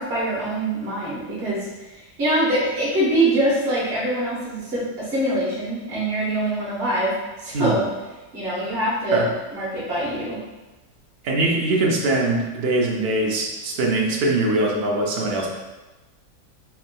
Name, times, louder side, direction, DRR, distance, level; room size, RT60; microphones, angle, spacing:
voice 1, 0.0-7.9 8.3-9.2 9.5-10.4, right 1 dB, 40° right, -8 dB, 1.2 m, -24 dB
voice 2, 11.2-15.5, right 2 dB, 75° right, -2 dB, 0.5 m, -22 dB
4.3 x 3.4 x 2.2 m, 1.1 s
omnidirectional pair, 1.8 m